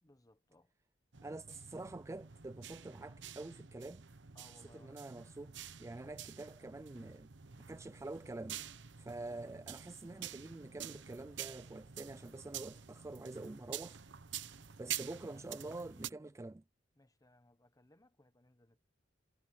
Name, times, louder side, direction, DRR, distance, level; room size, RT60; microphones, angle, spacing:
voice 1, 0.0-0.7 4.3-5.3 14.8-15.0 15.3-15.5 17.0-18.8, left 1 dB, 20° left, 1.1 m, -65 dB
sound 1, 1.1-16.1, right 9 dB, 70° right, 1.0 m, -48 dB
voice 2, 1.2-4.0 4.6-5.5 5.8-7.3 7.7-8.6 9.0-14.0 14.8-16.6, right 2 dB, 15° right, 0.4 m, -46 dB
head